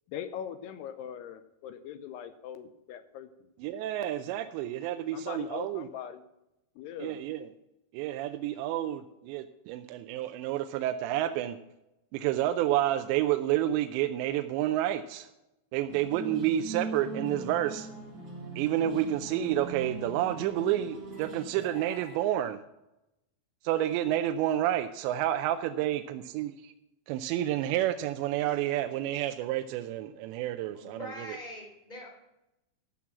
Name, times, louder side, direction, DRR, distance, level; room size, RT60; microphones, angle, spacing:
voice 1, 0.1-3.5 5.1-6.2 6.8-7.2, left 9 dB, 80° left, 10 dB, 2.6 m, -41 dB
voice 2, 3.6-5.9 7.0-7.5 7.9-11.6 12.1-15.3 15.7-17.9 18.6-22.6 23.6-26.7 27.1-31.4, right 12 dB, 85° right, 8 dB, 2.8 m, -30 dB
sound 1, 15.9-22.2, right 2 dB, 40° right, 2.8 m, -41 dB
voice 3, 30.7-32.1, left 1 dB, 10° left, -1 dB, 2.9 m, -43 dB
14.0 x 6.0 x 7.4 m, 0.90 s
omnidirectional pair, 5.1 m